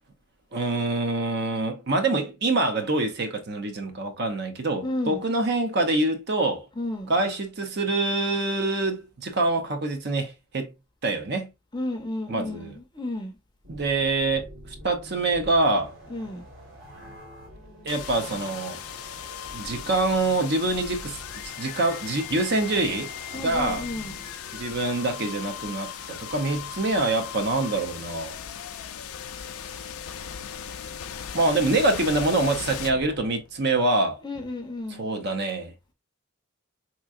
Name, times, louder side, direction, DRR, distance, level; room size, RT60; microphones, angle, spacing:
voice 1, 0.5-6.7 7.1-10.7 11.0-11.5 12.3-12.7 13.7-14.5 14.8-15.9 17.8-18.8 19.5-21.2 21.6-23.1 23.4-23.8 24.5-28.4 31.3-34.2 35.0-35.7, right 2 dB, 50° right, 0.6 m, -25 dB
voice 2, 4.8-5.3 6.7-7.1 11.7-13.4 16.1-16.5 23.3-24.3 34.2-35.1, left 1 dB, 20° left, 0.6 m, -32 dB
sound 1, 13.6-27.0, equal, 65° right, 1.7 m, -45 dB
sound 2, 17.9-33.7, left 9 dB, 85° left, 0.4 m, -38 dB
3.5 x 2.9 x 2.4 m
head